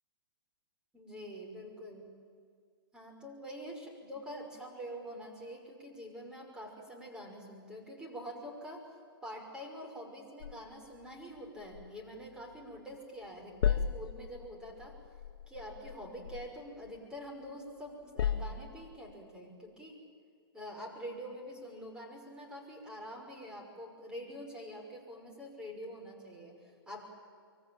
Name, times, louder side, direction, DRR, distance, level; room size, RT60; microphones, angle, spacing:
voice 1, 0.9-2.1 2.9-8.9 9.2-15.0 15.5-20.1 20.5-27.1, equal, 5° right, 0 dB, 5.8 m, -46 dB
sound 1, 10.4-13.0 13.2-17.5 17.9-19.1, left 8 dB, 60° left, 1.2 m, -37 dB
24.5 x 24.0 x 9.0 m, 2.1 s
hypercardioid pair, 135°, 13 cm